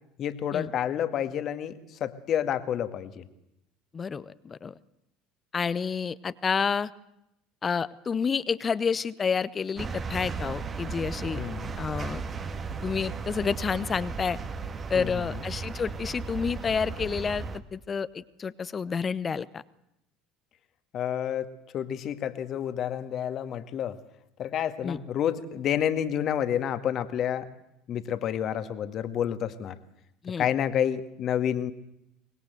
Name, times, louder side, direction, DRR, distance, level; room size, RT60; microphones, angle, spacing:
voice 1, 0.2-3.3 11.3-11.7 14.9-15.2 20.9-24.0 24.4-27.5 27.9-29.8 30.4-31.7, left 9 dB, 45° left, 10 dB, 1.9 m, -29 dB
voice 2, 3.9-4.7 5.5-6.9 7.6-11.4 11.8-12.2 12.8-14.4 14.9-19.6 24.8-25.0 30.2-30.5, left 6 dB, 30° left, 17 dB, 1.0 m, -29 dB
sound 1, 9.8-17.6, right 5 dB, 30° right, 1.9 m, -35 dB
24.5 x 20.5 x 8.0 m, 0.82 s
figure-of-eight pair, 65°, 0 cm